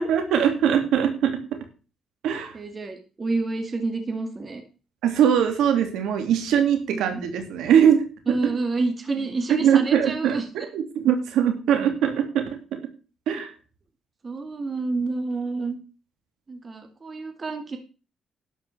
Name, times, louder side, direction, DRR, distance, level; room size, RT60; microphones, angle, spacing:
voice 1, 0.0-1.4 2.2-2.5 5.0-8.0 8.3-8.4 9.5-12.5 12.7-12.8 13.3-13.5, right 8 dB, 85° right, 6 dB, 2.9 m, -21 dB
voice 2, 2.5-4.6 6.9-7.2 8.3-10.7 14.2-15.8 16.5-17.8, right 3 dB, 35° right, 5 dB, 2.2 m, -29 dB
12.0 x 5.9 x 7.1 m, 0.35 s
cardioid pair, 90°, 0 cm